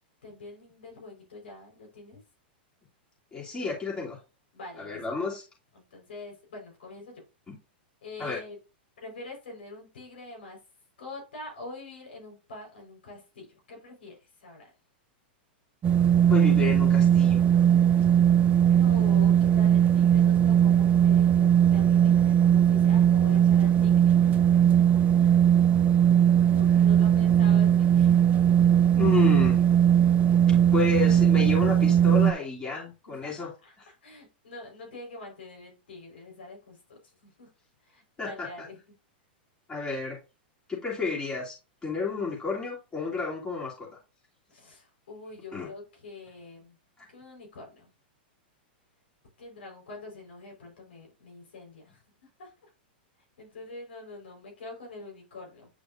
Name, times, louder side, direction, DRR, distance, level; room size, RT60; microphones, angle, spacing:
voice 1, 0.2-2.2 4.5-5.1 5.7-7.2 8.0-8.6 9.0-10.6 11.0-14.1 14.4-14.7 18.3-24.4 25.2-26.0 26.4-28.2 33.0-37.5 37.8-38.7 44.5-46.8 47.1-47.9 49.4-52.5 53.4-55.7, left 2 dB, 85° left, 0 dB, 4.5 m, -45 dB
voice 2, 3.3-4.2 4.8-5.4 7.5-7.6 8.2-8.4 16.3-17.4 29.0-29.6 30.7-33.5 38.2-38.7 39.7-40.2 40.7-41.6 41.8-43.9 45.5-45.7 47.0-47.1, left 4 dB, 15° left, -4 dB, 2.9 m, -31 dB
sound 1, 15.8-32.3, right 9 dB, 25° right, 0.6 m, -20 dB
9.2 x 5.1 x 2.6 m, 0.29 s
hypercardioid pair, 130°, 6 cm